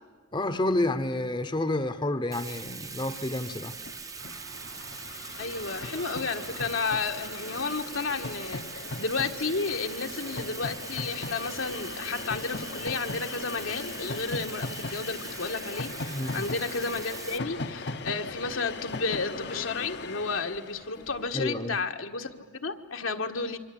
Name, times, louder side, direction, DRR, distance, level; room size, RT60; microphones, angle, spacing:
voice 1, 0.3-3.7 16.1-16.5 21.3-21.8, left 1 dB, 20° left, 10 dB, 0.9 m, -29 dB
Bathtub (filling or washing), 2.3-17.4, right 5 dB, 15° right, 0.8 m, -42 dB
Train, 2.8-2.9 3.1-21.5, left 3 dB, 55° left, 0.9 m, -39 dB
sound 1, 4.2-11.9, right 3 dB, 75° right, 4.7 m, -53 dB
voice 2, 5.4-23.6, left 4 dB, 75° left, 5 dB, 1.6 m, -32 dB
27.0 x 25.0 x 8.8 m, 1.5 s
head